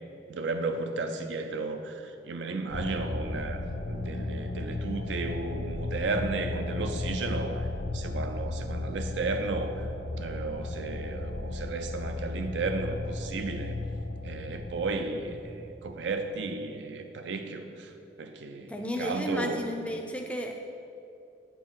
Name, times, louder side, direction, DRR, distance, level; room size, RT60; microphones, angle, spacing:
voice 1, 0.3-13.8 14.2-17.9 18.2-19.6, right 3 dB, 85° right, 6 dB, 0.5 m, -34 dB
sound 1, 2.7-16.0, left 2 dB, 60° left, 0.5 m, -35 dB
voice 2, 18.7-20.7, equal, 5° left, 3 dB, 0.4 m, -33 dB
8.2 x 4.5 x 3.7 m, 2.6 s
head